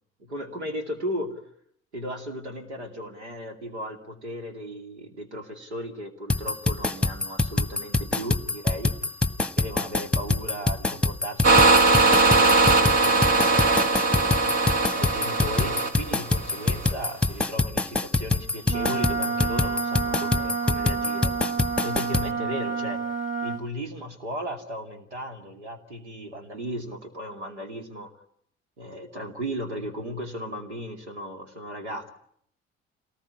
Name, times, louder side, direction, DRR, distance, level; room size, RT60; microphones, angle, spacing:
voice 1, 0.3-1.4 1.9-8.9 9.5-14.4 14.9-21.3 21.8-23.0 23.4-28.1 28.8-32.1, equal, 80° right, 5 dB, 2.7 m, -36 dB
sound 1, 6.3-22.3, left 3 dB, 5° left, 1.4 m, -25 dB
sound 2, 11.4-16.9, right 3 dB, 45° right, 2.2 m, -20 dB
Wind instrument woodwind instrument, 18.7-23.6, right 5 dB, 20° right, 2.4 m, -29 dB
29.5 x 19.0 x 9.9 m, 0.70 s
figure-of-eight pair, 50°, 34 cm